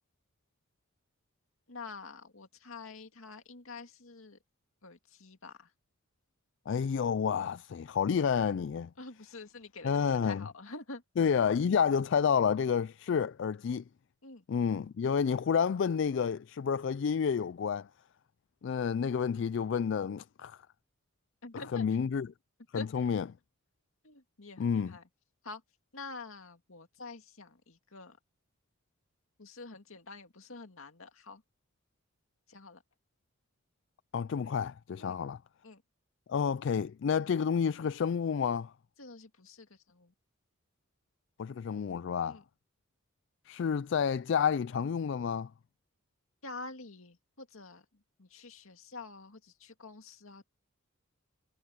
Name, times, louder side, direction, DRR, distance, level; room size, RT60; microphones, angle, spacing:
voice 1, 1.7-4.4 4.8-5.7 9.0-11.0 14.2-14.4 21.4-22.2 22.7-23.1 24.0-25.0 25.4-25.6 25.9-28.2 29.4-31.4 32.5-32.8 35.0-35.2 35.6-35.8 39.0-40.1 42.2-42.4 46.4-50.5, left 3 dB, 75° left, 2.2 m, -47 dB
voice 2, 6.7-8.9 9.8-10.4 11.2-13.8 14.5-17.9 18.6-20.6 21.7-22.3 22.7-23.2 24.6-24.9 34.1-35.4 36.3-38.7 41.4-42.4 43.5-45.5, left 6 dB, 60° left, 0.3 m, -30 dB
head